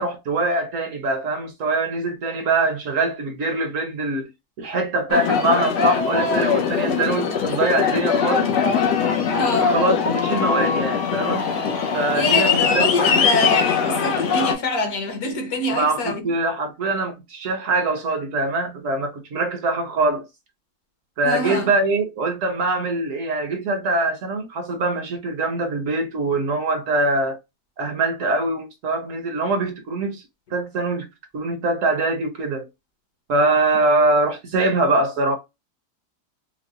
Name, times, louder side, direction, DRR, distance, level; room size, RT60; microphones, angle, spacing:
voice 1, 0.0-4.3 4.6-8.5 9.4-11.5 11.9-13.2 15.7-20.3 21.2-27.4 27.8-30.2 30.5-31.1 31.3-32.7 33.3-35.3, right 2 dB, 60° right, 0.9 m, -23 dB
Aircraft, 5.1-14.5, left 6 dB, 85° left, 1.4 m, -21 dB
voice 2, 9.4-9.8 12.1-16.2 21.2-21.7, left 2 dB, 65° left, 1.4 m, -25 dB
4.6 x 2.1 x 2.4 m
omnidirectional pair, 1.7 m